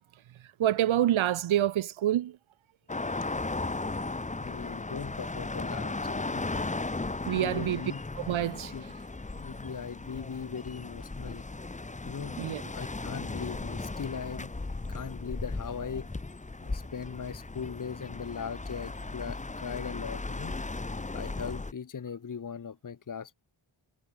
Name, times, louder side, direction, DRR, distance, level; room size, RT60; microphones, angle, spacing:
voice 1, 0.6-2.4 7.3-7.8 8.2-8.7 12.4-12.6, right 12 dB, 75° right, 0.9 m, -27 dB
sound 1, 2.9-21.7, left 3 dB, 15° left, 1.3 m, -36 dB
voice 2, 4.4-6.7 7.4-8.0 8.7-8.8 9.4-11.4 12.0-12.4 12.7-14.5 14.9-16.1 16.6-20.5 21.1-23.3, left 6 dB, 40° left, 1.6 m, -39 dB
wide cardioid pair, 155°, 48 cm